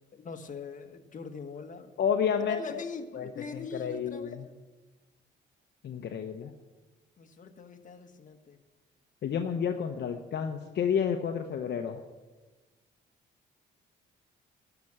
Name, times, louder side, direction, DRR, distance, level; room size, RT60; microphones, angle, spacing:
voice 1, 0.1-1.9 2.5-4.5 7.2-8.6, left 5 dB, 40° left, 5 dB, 1.4 m, -42 dB
voice 2, 2.0-2.6 3.1-4.4 5.8-6.5 9.2-12.0, left 7 dB, 60° left, 5 dB, 0.9 m, -30 dB
13.0 x 6.0 x 8.8 m, 1.2 s
cardioid pair, 90°, 20 cm